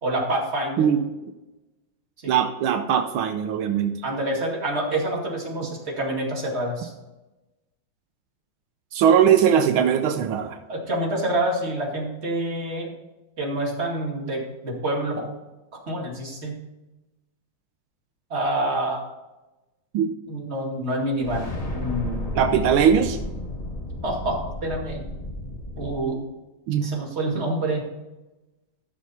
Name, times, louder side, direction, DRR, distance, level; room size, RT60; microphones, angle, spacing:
voice 1, 0.0-0.9 2.2-2.4 4.0-6.9 10.7-12.9 13.4-15.3 15.9-16.5 18.3-19.0 20.3-22.3 24.0-25.0 25.8-26.2 26.8-27.9, right 1 dB, 30° right, -2 dB, 2.5 m, -27 dB
voice 2, 2.3-4.0 8.9-10.6 19.9-20.1 22.3-23.2 26.7-26.9, right 8 dB, 85° right, 7 dB, 1.6 m, -20 dB
sound 1, 21.2-26.0, left 1 dB, 30° left, 0.8 m, -32 dB
14.0 x 6.5 x 4.2 m, 1.1 s
omnidirectional pair, 2.2 m